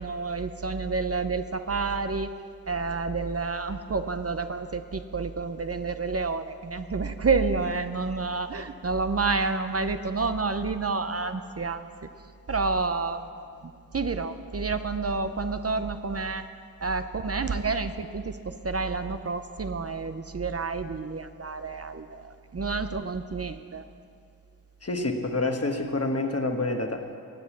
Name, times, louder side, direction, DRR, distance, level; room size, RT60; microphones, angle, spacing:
voice 1, 0.0-2.3 2.7-11.8 12.5-13.3 13.6-16.4 16.8-23.9, right 4 dB, 40° right, 9 dB, 0.6 m, -29 dB
voice 2, 24.8-27.2, left 2 dB, 40° left, 4 dB, 1.3 m, -28 dB
18.5 x 7.9 x 7.2 m, 2.3 s
wide cardioid pair, 75°, 36 cm